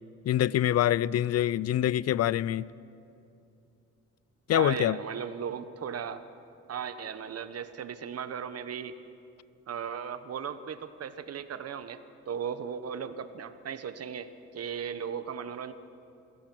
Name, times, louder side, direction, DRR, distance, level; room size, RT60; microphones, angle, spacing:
voice 1, 0.3-2.7 4.5-5.0, left 12 dB, 55° left, 0.4 m, -25 dB
voice 2, 4.5-6.2 6.7-8.9 9.7-12.0 12.3-15.7, right 7 dB, 55° right, 1.2 m, -36 dB
27.0 x 16.5 x 6.1 m
cardioid pair, 90°, 30 cm